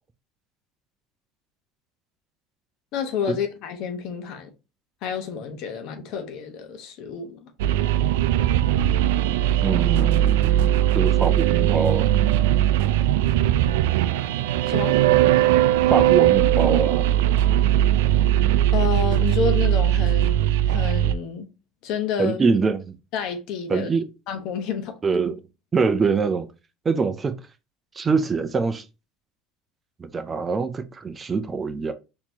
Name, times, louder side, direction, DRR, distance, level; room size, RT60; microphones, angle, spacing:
voice 1, 2.9-4.5 5.0-7.5 14.7-15.0 18.7-21.5 21.8-22.4 23.1-23.9 24.3-25.0, left 6 dB, 60° left, 0.9 m, -29 dB
sound 1, 7.6-21.1, right 12 dB, 85° right, 0.3 m, -19 dB
voice 2, 9.6-12.1 15.9-17.1 22.2-22.9 23.7-24.0 25.0-25.4 25.7-26.5 26.8-27.3 27.9-28.8 30.0-31.9, right 5 dB, 25° right, 0.5 m, -24 dB
4.3 x 2.9 x 2.8 m
supercardioid pair, 115°, 0 cm